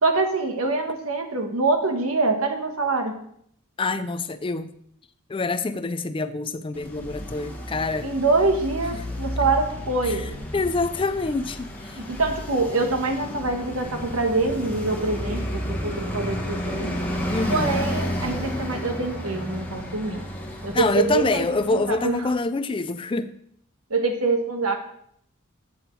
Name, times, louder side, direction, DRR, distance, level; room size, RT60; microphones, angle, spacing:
voice 1, 0.0-3.1 8.0-10.3 11.9-16.9 17.5-20.2 20.6-21.4 21.7-22.2 23.9-24.8, right 3 dB, 85° right, 5 dB, 1.4 m, -25 dB
voice 2, 3.8-4.7 5.3-8.1 10.0-12.0 17.3-17.9 20.7-23.3, left 3 dB, 25° left, 12 dB, 0.4 m, -26 dB
Traffic noise roadway noise, 6.7-22.2, equal, 5° left, 1.3 m, -32 dB
8.5 x 7.7 x 4.6 m, 0.69 s
head